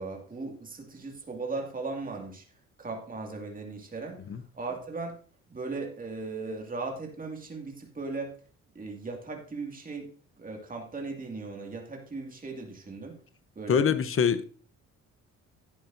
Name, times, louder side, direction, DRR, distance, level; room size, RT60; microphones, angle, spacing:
voice 1, 0.0-2.5 2.8-4.2 4.5-5.2 5.5-8.4 8.7-10.1 10.4-13.2 13.6-13.9, right 3 dB, 30° right, 2.4 m, -37 dB
voice 2, 13.7-14.4, left 7 dB, 45° left, 0.9 m, -24 dB
11.5 x 9.3 x 2.7 m
cardioid pair, 90°, 30 cm